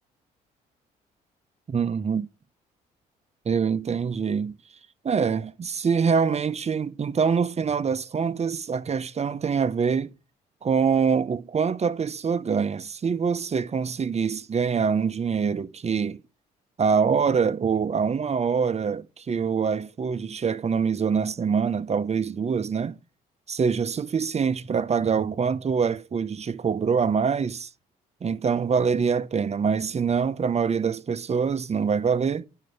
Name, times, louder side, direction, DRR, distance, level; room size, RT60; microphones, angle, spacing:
voice 1, 1.7-2.3 3.4-4.6 5.0-10.1 10.6-16.2 16.8-23.0 23.5-27.7 28.2-32.5, right 6 dB, 35° right, 0.8 m, -25 dB
9.3 x 5.6 x 5.1 m
supercardioid pair, 60°, 18 cm